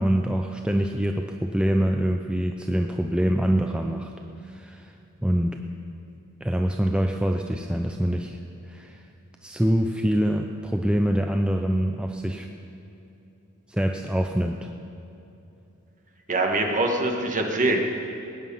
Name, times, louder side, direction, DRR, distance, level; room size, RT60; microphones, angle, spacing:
voice 1, 0.0-4.1 4.4-4.9 5.2-5.6 6.4-8.4 8.7-9.0 9.4-12.5 13.7-14.7, equal, 5° right, 3 dB, 0.5 m, -25 dB
voice 2, 16.3-17.8, right 2 dB, 35° right, 2 dB, 1.6 m, -23 dB
20.0 x 9.6 x 5.5 m, 2.8 s
head